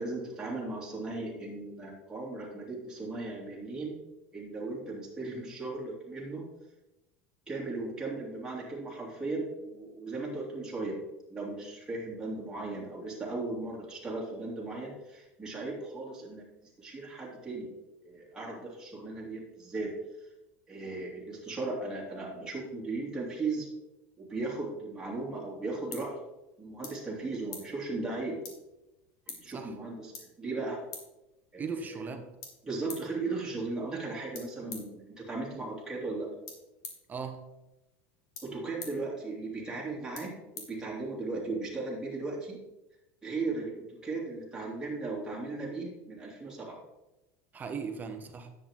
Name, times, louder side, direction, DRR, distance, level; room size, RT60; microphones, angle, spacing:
voice 1, 0.0-4.0 4.3-6.4 7.5-11.0 11.3-16.4 16.8-17.7 18.0-19.9 20.7-23.7 24.2-26.2 26.6-28.4 29.3-30.1 30.4-30.8 31.5-32.0 32.6-36.3 38.4-42.6 43.2-46.8, right 3 dB, 10° right, -4 dB, 2.9 m, -37 dB
sound 1, 25.2-41.4, left 5 dB, 55° left, 2.3 m, -51 dB
voice 2, 31.6-32.3 37.1-37.4 47.5-48.5, right 5 dB, 25° right, 6 dB, 1.1 m, -37 dB
10.0 x 7.7 x 3.7 m, 0.97 s
supercardioid pair, 120°, 7 cm